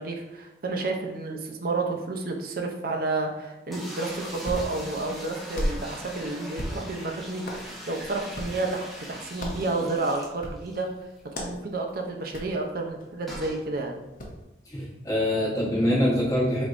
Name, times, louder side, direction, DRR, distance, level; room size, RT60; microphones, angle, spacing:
voice 1, 0.0-10.9 11.4-14.0, right 3 dB, 50° right, 3 dB, 0.5 m, -30 dB
sound 1, 3.7-10.9 11.2-11.3 11.5-11.6 13.3-13.6, equal, ahead, 0.6 m, -41 dB
Hands, 4.1-14.4, equal, 45° left, 0.7 m, -38 dB
voice 2, 14.7-16.6, left 1 dB, 20° left, -5 dB, 0.9 m, -24 dB
4.2 x 3.4 x 2.5 m, 0.95 s
head